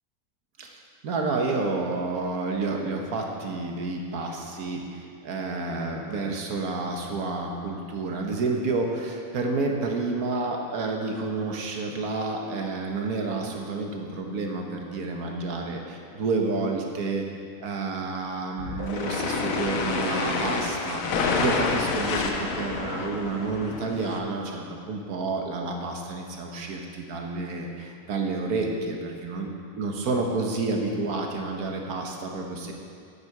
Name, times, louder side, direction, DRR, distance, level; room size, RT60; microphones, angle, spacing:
voice 1, 0.6-17.2 17.6-29.5 29.7-32.7, right 3 dB, 80° right, 1 dB, 1.6 m, -30 dB
sound 1, 18.6-24.2, left 4 dB, 70° left, 1.2 m, -28 dB
9.4 x 8.3 x 4.8 m, 2.3 s
omnidirectional pair, 1.6 m